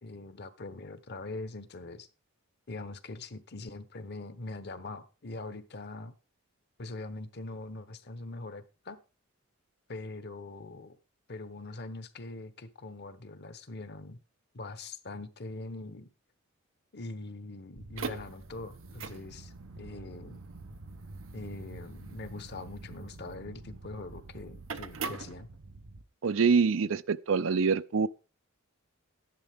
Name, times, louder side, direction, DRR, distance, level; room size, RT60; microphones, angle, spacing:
voice 1, 0.0-2.1 2.7-6.1 6.8-9.0 9.9-11.0 11.3-14.2 14.5-16.1 16.9-20.4 21.3-25.5, left 2 dB, 55° left, 1.0 m, -42 dB
sound 1, 17.8-26.0, right 4 dB, 90° right, 0.9 m, -43 dB
voice 2, 26.2-28.1, right 5 dB, 70° right, 0.5 m, -25 dB
13.0 x 10.5 x 3.6 m
head